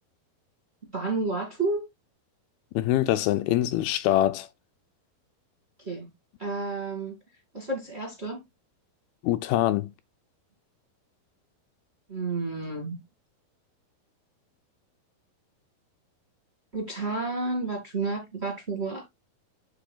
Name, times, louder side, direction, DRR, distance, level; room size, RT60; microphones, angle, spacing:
voice 1, 0.9-1.8 5.8-6.1 6.4-7.1 7.5-8.4 12.1-13.0 16.7-19.1, right 3 dB, 25° right, 1.5 m, -30 dB
voice 2, 2.8-4.5 9.2-9.9, left 13 dB, 80° left, 2.3 m, -24 dB
8.6 x 7.4 x 2.3 m
omnidirectional pair, 4.5 m